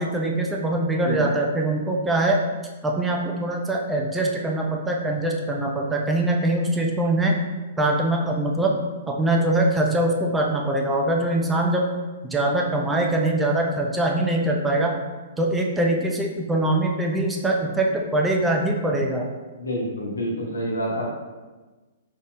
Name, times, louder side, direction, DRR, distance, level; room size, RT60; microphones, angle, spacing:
voice 1, 0.0-2.4 2.8-7.4 7.8-8.8 9.1-11.9 12.2-14.9 15.4-19.3, right 1 dB, 10° right, 0 dB, 0.5 m, -23 dB
voice 2, 19.6-21.1, equal, 90° left, -2 dB, 1.0 m, -27 dB
4.1 x 3.4 x 2.5 m, 1.2 s
hypercardioid pair, 120°, 0 cm